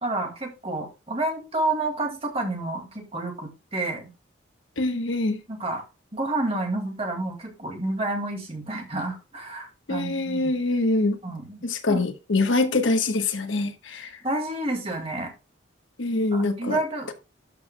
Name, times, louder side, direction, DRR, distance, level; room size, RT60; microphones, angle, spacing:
voice 1, 0.0-4.0 5.5-5.8 6.1-10.5 11.2-12.0 14.2-15.3 16.3-17.1, right 2 dB, 30° right, 2.1 m, -29 dB
voice 2, 4.8-5.4 9.9-11.2 11.6-14.1 16.0-16.8, left 2 dB, 85° left, 1.2 m, -24 dB
12.5 x 6.3 x 2.2 m
head